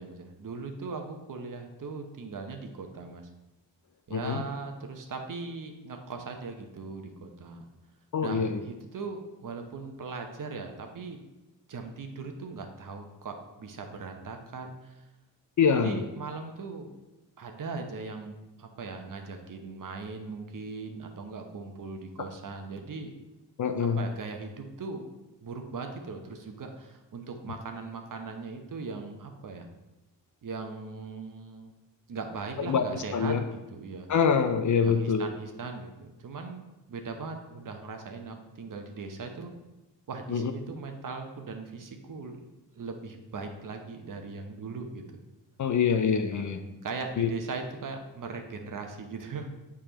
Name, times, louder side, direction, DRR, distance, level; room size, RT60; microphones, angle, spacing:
voice 1, 0.0-3.2 4.1-7.7 8.2-11.2 11.7-15.0 15.8-16.9 17.4-23.1 23.8-25.0 25.4-29.7 30.4-31.7 32.1-34.1 34.8-36.6 36.9-39.5 40.1-42.4 42.7-45.0 46.3-49.5, right 4 dB, 45° right, 4 dB, 1.0 m, -39 dB
voice 2, 4.1-4.4 8.1-8.6 15.6-16.0 23.6-24.0 32.7-33.4 34.1-35.3 40.3-40.5 45.6-46.6 47.2-47.3, left 6 dB, 40° left, 8 dB, 0.6 m, -25 dB
6.9 x 4.8 x 3.0 m, 1.0 s
hypercardioid pair, 45°, 46 cm